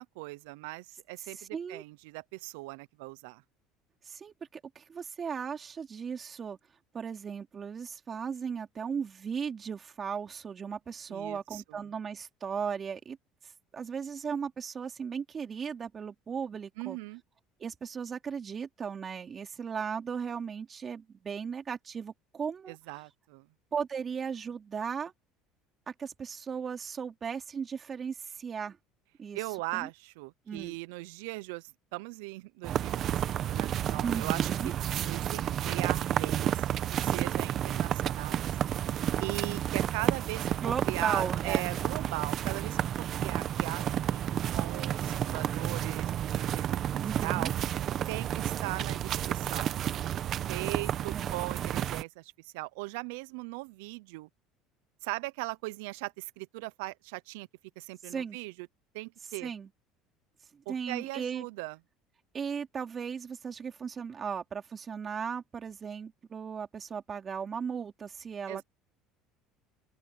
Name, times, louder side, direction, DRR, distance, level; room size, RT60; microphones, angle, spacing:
voice 1, 0.0-3.4 11.1-11.6 16.8-17.2 22.7-23.5 29.3-34.7 35.1-38.5 39.2-40.5 40.9-46.7 47.2-47.5 48.1-49.8 50.5-54.3 55.0-57.5 57.8-58.5 58.9-59.5 60.7-61.8 68.5-68.6, right 24 dB, 85° right, 0.7 m, -39 dB
voice 2, 1.2-1.8 4.0-6.6 6.9-13.2 13.7-17.0 17.6-22.8 23.7-25.1 25.9-28.8 29.2-29.4 29.7-29.9 30.5-30.8 34.0-34.7 40.6-41.7 47.0-47.5 51.1-51.5 58.1-58.4 59.4-59.7 60.5-61.4 62.3-68.6, right 6 dB, 35° right, 3.4 m, -36 dB
sound 1, 32.6-52.0, right 11 dB, 50° right, 1.3 m, -31 dB
open air
supercardioid pair, 100°, 0 cm